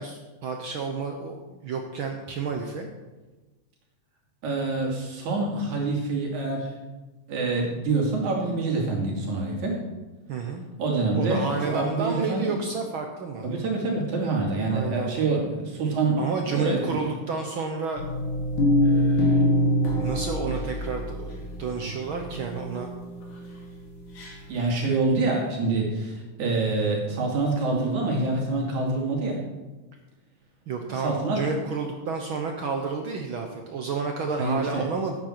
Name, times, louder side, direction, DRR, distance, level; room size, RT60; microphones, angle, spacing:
voice 1, 0.0-2.9 10.3-10.6 11.1-13.5 14.7-15.3 16.2-18.0 18.8-19.5 19.9-22.9 30.7-35.2, right 4 dB, 65° right, 3 dB, 1.3 m, -31 dB
voice 2, 4.4-6.7 7.3-9.8 10.8-12.6 13.4-16.2 16.5-17.1 24.5-29.4 30.9-31.4 34.4-34.8, right 3 dB, 85° right, -1 dB, 3.7 m, -26 dB
sound 1, 18.0-24.4 24.9-25.0, left 1 dB, 90° left, 3.1 m, -25 dB
13.0 x 9.2 x 4.5 m, 1.2 s
omnidirectional pair, 3.3 m